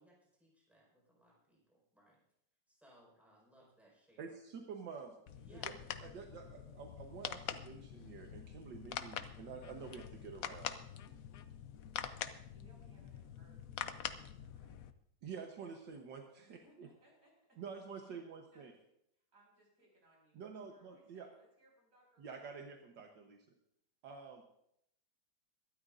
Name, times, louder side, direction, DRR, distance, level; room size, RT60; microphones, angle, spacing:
voice 1, 0.0-2.2 2.7-4.3 5.4-5.7, equal, ahead, -4 dB, 5.2 m, -66 dB
voice 2, 4.2-5.2 5.5-5.7 6.0-10.7 15.2-16.9 17.6-18.7 20.3-21.3 22.2-23.4 24.0-24.4, right 6 dB, 75° right, 2 dB, 1.8 m, -49 dB
sound 1, 5.3-14.9, left 9 dB, 60° left, 0.9 m, -45 dB
voice 3, 12.5-14.9 16.4-17.6 18.0-18.2 18.5-18.8 19.2-22.7, right 1 dB, 50° right, -2 dB, 6.3 m, -69 dB
23.0 x 12.5 x 2.6 m, 0.77 s
omnidirectional pair, 2.0 m